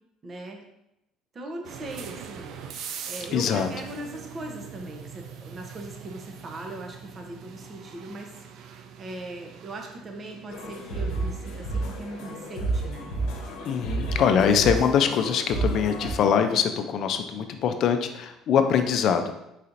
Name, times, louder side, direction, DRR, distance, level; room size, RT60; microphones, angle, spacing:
voice 1, 0.2-0.6 1.3-2.5 3.1-8.3 9.0-13.1, right 2 dB, 30° right, 2 dB, 0.7 m, -39 dB
sound 1, 1.6-18.4, right 7 dB, 65° right, 0.4 m, -44 dB
voice 2, 3.3-3.7 13.6-19.3, left 7 dB, 55° left, 7 dB, 0.4 m, -23 dB
sound 2, 10.5-16.1, right 2 dB, 80° left, 0.8 m, -31 dB
4.3 x 4.0 x 2.5 m, 0.86 s
cardioid pair, 120°, 0 cm